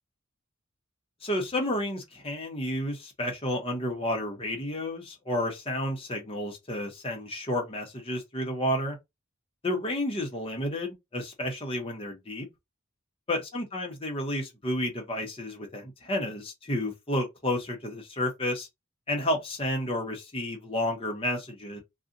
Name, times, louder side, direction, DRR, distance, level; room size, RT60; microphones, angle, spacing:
voice 1, 1.2-9.0 9.6-12.5 13.3-18.7 19.1-21.8, left 1 dB, 25° left, 1.0 m, -31 dB
2.6 x 2.4 x 3.7 m
head